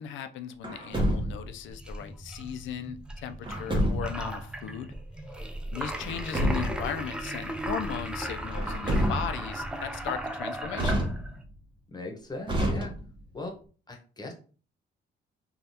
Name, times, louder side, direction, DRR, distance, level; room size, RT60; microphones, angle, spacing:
voice 1, 0.0-4.9 5.7-11.0, left 8 dB, 75° left, 9 dB, 0.4 m, -37 dB
Truck, 0.6-1.6 3.4-4.3 5.9-6.9 8.5-9.6 10.7-11.6 12.5-13.3, equal, 25° right, 0.9 m, -28 dB
sound 1, 1.7-11.4, right 1 dB, 5° right, 0.3 m, -36 dB
voice 2, 11.9-12.9 13.3-13.6 13.9-14.3, left 2 dB, 20° left, 2 dB, 0.9 m, -38 dB
3.3 x 2.3 x 2.7 m, 0.39 s
cardioid pair, 90°, 20 cm